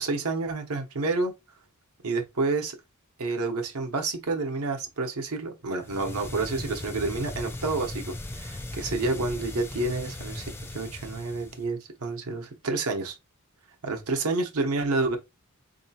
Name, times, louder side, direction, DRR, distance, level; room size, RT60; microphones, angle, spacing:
voice 1, 0.0-1.3 2.0-2.8 3.2-13.2 13.8-15.2, right 3 dB, 80° right, 0.9 m, -29 dB
sound 1, 5.8-11.7, left 1 dB, 10° left, 0.4 m, -38 dB
3.9 x 2.8 x 2.8 m
head